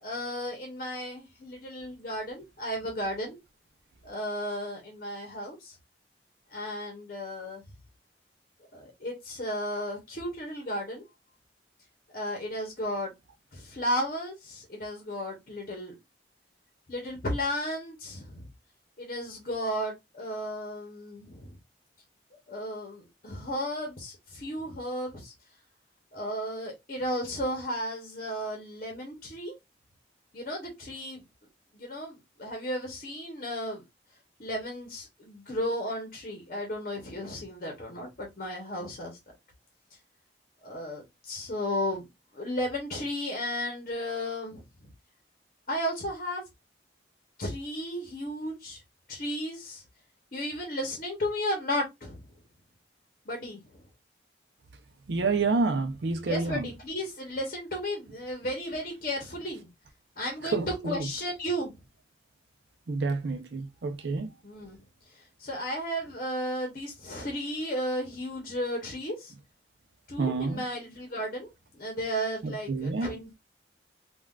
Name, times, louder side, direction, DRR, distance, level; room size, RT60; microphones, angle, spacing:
voice 1, 0.0-3.4 4.0-5.7 6.5-7.6 8.7-11.0 12.1-13.1 13.5-16.0 16.9-18.5 19.0-21.5 22.5-25.3 26.1-29.5 30.3-31.2 31.7-33.8 34.4-39.2 40.6-42.1 42.3-44.9 45.7-46.4 47.4-48.8 49.1-49.8 50.3-52.2 53.3-53.6 56.2-59.7 60.2-61.7 64.4-64.8 65.1-69.3 70.1-71.5 71.7-73.3, equal, 45° left, 0.8 m, -34 dB
voice 2, 55.1-56.7 60.4-61.1 62.9-64.3 70.2-70.6 72.4-73.2, right 4 dB, 70° right, 0.5 m, -29 dB
3.6 x 2.3 x 2.3 m
head